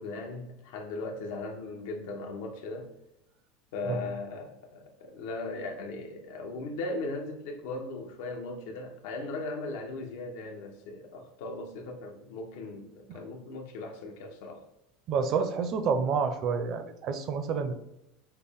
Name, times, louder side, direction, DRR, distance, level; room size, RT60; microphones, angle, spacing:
voice 1, 0.0-2.9 3.7-14.6, left 2 dB, 75° left, 0.9 m, -38 dB
voice 2, 15.1-17.8, right 5 dB, 40° right, 0.5 m, -29 dB
5.5 x 2.1 x 3.5 m
supercardioid pair, 150°, 0 cm